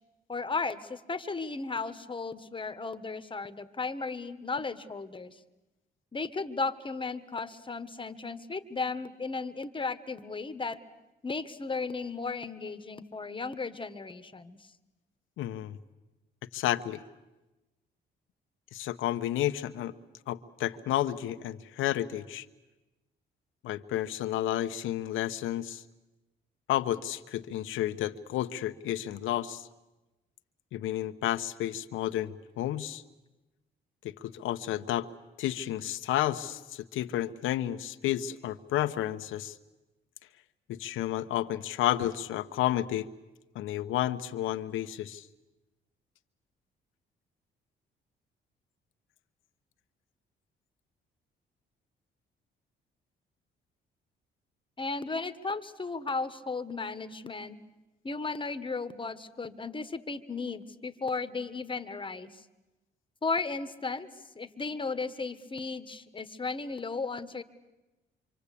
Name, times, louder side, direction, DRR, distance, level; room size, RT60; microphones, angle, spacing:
voice 1, 0.3-5.4 6.1-10.8 11.2-14.6 54.8-57.6 58.0-62.4 63.2-64.1 64.3-67.4, left 4 dB, 25° left, 11 dB, 1.5 m, -35 dB
voice 2, 15.4-15.8 16.5-17.0 18.7-19.9 20.3-22.5 23.6-25.8 26.7-29.7 30.7-33.0 34.0-35.1 35.4-39.5 40.7-43.1 43.5-45.3, left 13 dB, 85° left, 9 dB, 1.0 m, -31 dB
26.0 x 25.5 x 8.5 m, 1.0 s
cardioid pair, 90°, 20 cm